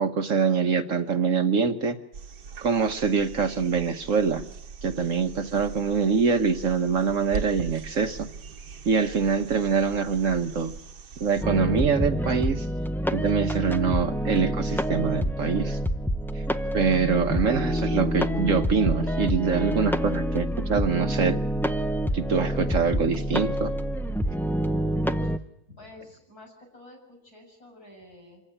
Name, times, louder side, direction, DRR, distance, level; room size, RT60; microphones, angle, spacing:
voice 1, 0.0-2.0 2.6-4.4 4.8-8.3 8.8-10.7 11.2-12.7 13.1-15.8 16.3-16.4 16.7-21.4 22.1-23.7, right 5 dB, 55° right, 7 dB, 1.4 m, -24 dB
sound 1, 2.1-11.5 13.6-13.7, right 5 dB, 80° right, 1.8 m, -40 dB
sound 2, 11.4-25.4, equal, 5° left, 0.3 m, -27 dB
voice 2, 24.6-25.0 25.2-28.4, left 2 dB, 65° left, 1 dB, 8.0 m, -50 dB
26.5 x 16.0 x 10.0 m, 0.80 s
omnidirectional pair, 1.7 m